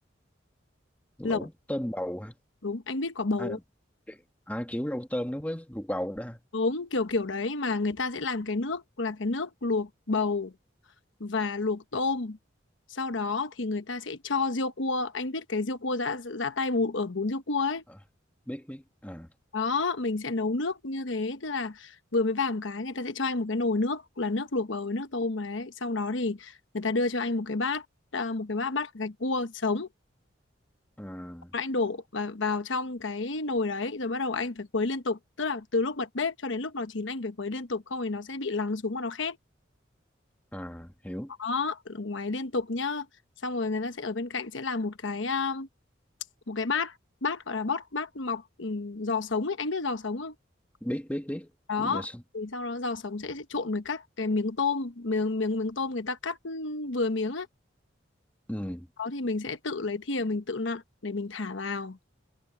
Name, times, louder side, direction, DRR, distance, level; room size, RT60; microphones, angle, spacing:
voice 1, 1.2-2.4 3.4-3.6 4.1-6.4 18.5-19.3 31.0-31.5 40.5-41.3 50.8-51.5 51.8-52.2 58.5-58.9, equal, 10° left, 1.4 m, -35 dB
voice 2, 2.6-3.6 6.5-10.5 11.2-12.4 12.9-17.8 19.5-27.8 28.1-29.9 31.5-39.4 41.4-43.1 43.4-45.7 46.5-46.9 47.2-50.3 51.7-52.1 52.3-57.5 59.0-62.0, left 3 dB, 75° left, 1.1 m, -30 dB
head